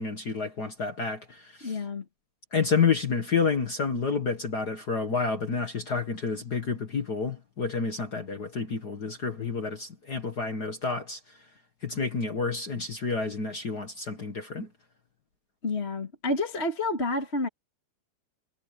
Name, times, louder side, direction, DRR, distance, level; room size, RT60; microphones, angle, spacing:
voice 1, 0.0-1.8 2.5-11.2 11.8-14.7, left 5 dB, 55° left, 1.0 m, -29 dB
voice 2, 1.6-2.0 15.6-17.5, left 2 dB, 20° left, 2.2 m, -29 dB
omnidirectional pair, 4.6 m